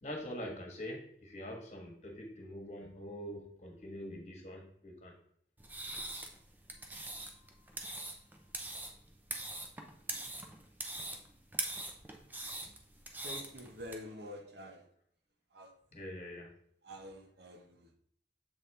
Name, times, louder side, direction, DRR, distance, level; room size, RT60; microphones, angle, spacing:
voice 1, 0.0-5.1 15.9-16.5, equal, 40° left, 1 dB, 1.4 m, -44 dB
sound 1, 5.6-14.0, right 2 dB, 10° right, 0.5 m, -42 dB
voice 2, 13.2-14.9 15.5-15.7 16.8-17.9, equal, 70° right, 4 dB, 1.0 m, -47 dB
7.1 x 4.1 x 3.3 m, 0.64 s
head